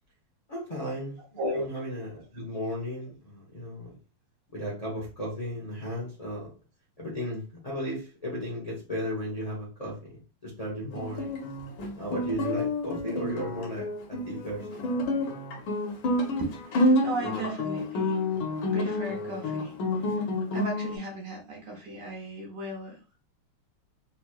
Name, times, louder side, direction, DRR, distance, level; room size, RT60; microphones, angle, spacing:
voice 1, 0.5-1.2 1.5-4.0 4.5-6.5 7.0-11.4 11.9-14.9, equal, 35° left, -4 dB, 0.5 m, -35 dB
Guitar, 10.9-21.0, left 1 dB, 70° left, 1.7 m, -29 dB
voice 2, 17.0-18.2 18.7-19.7 20.0-20.2 20.5-23.0, right 1 dB, 65° right, 0 dB, 1.4 m, -35 dB
4.0 x 3.0 x 2.3 m, 0.34 s
omnidirectional pair, 2.4 m